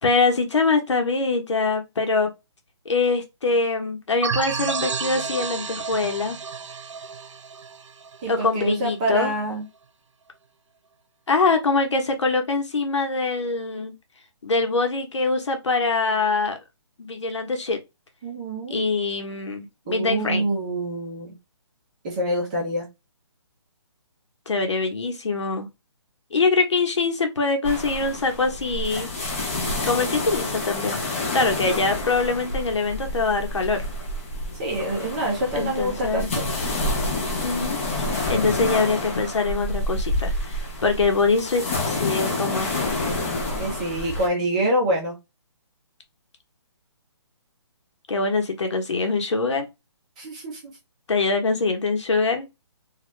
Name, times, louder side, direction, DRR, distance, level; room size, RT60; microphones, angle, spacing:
voice 1, 0.0-2.3 2.8-6.4 8.3-9.3 11.3-13.9 14.4-16.6 17.0-17.8 18.7-20.5 24.5-25.7 26.3-29.1 29.8-31.0 31.3-33.9 35.5-36.3 37.4-43.0 48.1-49.7 51.1-52.5, left 3 dB, 75° left, 1.1 m, -24 dB
sound 1, 4.2-8.7, right 6 dB, 90° right, 0.5 m, -31 dB
voice 2, 8.2-9.6 18.2-18.8 19.9-21.4 22.0-22.9 34.6-36.5 43.6-45.1 50.2-50.6, right 1 dB, 15° right, 0.6 m, -26 dB
sound 2, 27.6-44.3, left 2 dB, 25° left, 0.8 m, -28 dB
2.8 x 2.4 x 3.1 m
hypercardioid pair, 170°, 15 cm